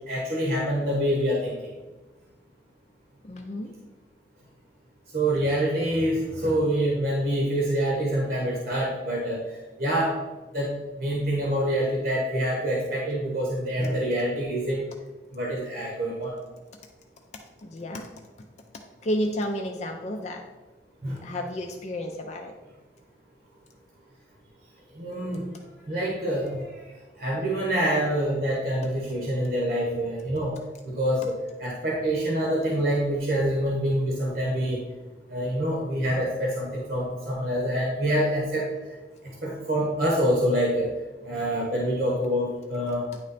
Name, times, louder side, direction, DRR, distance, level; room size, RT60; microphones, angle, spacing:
voice 1, 0.1-1.6 5.1-9.4 9.8-10.1 10.5-10.7 11.0-14.8 15.3-16.4 21.0-21.2 25.0-25.4 25.9-26.6 27.2-30.5 30.8-31.3 31.6-34.8 35.3-38.6 39.4-40.9 41.2-43.1, right 1 dB, 50° right, -3 dB, 1.1 m, -26 dB
voice 2, 3.2-3.7 17.6-18.1 19.0-20.4 21.2-22.5, equal, 40° left, 3 dB, 0.5 m, -31 dB
9.4 x 3.2 x 4.0 m, 1.2 s
head